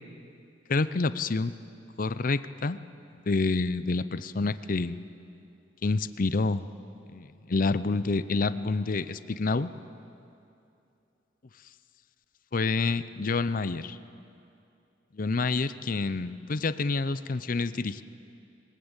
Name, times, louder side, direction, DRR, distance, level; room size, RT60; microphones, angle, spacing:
voice 1, 0.7-1.5 2.0-2.8 3.3-5.0 5.8-6.6 7.1-9.7 12.5-14.0 15.1-18.0, left 3 dB, 50° left, 14 dB, 0.6 m, -28 dB
21.5 x 20.0 x 8.2 m, 2.7 s
head